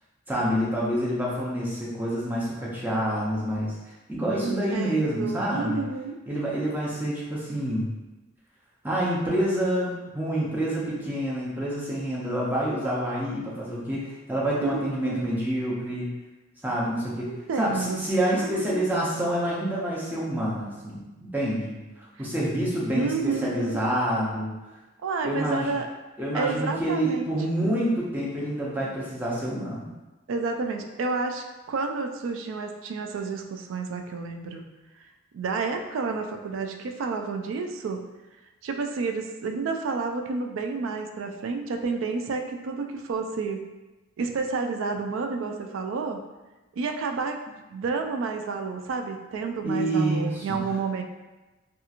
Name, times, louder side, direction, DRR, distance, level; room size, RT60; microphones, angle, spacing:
voice 1, 0.3-3.8 4.1-5.8 6.3-7.9 8.8-16.1 16.6-17.3 17.6-24.5 25.2-25.7 26.2-29.9 49.6-50.6, right 1 dB, 10° right, -6 dB, 0.5 m, -27 dB
voice 2, 4.4-6.2 14.6-15.2 17.3-18.1 18.3-18.9 22.9-23.8 25.0-25.9 26.3-27.3 27.6-28.0 30.3-34.6 35.3-38.0 38.6-43.7 44.2-46.2 46.8-51.0, right 4 dB, 80° right, 4 dB, 0.3 m, -30 dB
2.9 x 2.3 x 2.4 m, 1.1 s
head